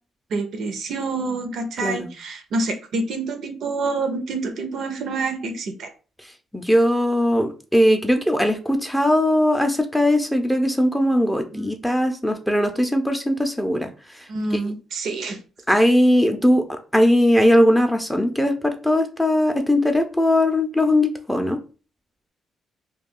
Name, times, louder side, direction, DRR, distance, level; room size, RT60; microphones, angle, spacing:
voice 1, 0.3-5.9 11.5-11.7 14.3-15.4, right 3 dB, 70° right, 6 dB, 0.6 m, -27 dB
voice 2, 6.5-13.9 14.6-14.7 15.7-16.6 16.9-21.6, left 1 dB, 5° left, 5 dB, 0.5 m, -19 dB
2.3 x 2.3 x 3.6 m, 0.35 s
cardioid pair, 90°, 0 cm